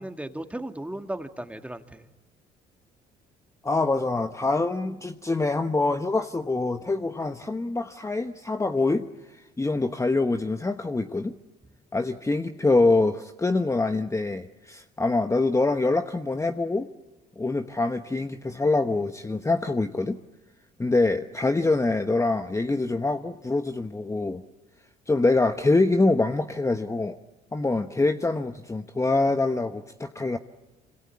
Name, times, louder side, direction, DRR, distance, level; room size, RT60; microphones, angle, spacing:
voice 1, 0.0-2.1, right 1 dB, 5° right, 6 dB, 2.1 m, -36 dB
voice 2, 3.6-11.4 11.9-16.9 17.4-20.2 20.8-24.4 25.1-27.2 27.5-30.4, left 3 dB, 15° left, 8 dB, 1.1 m, -25 dB
26.5 x 26.0 x 8.6 m, 1.1 s
supercardioid pair, 65°, 19 cm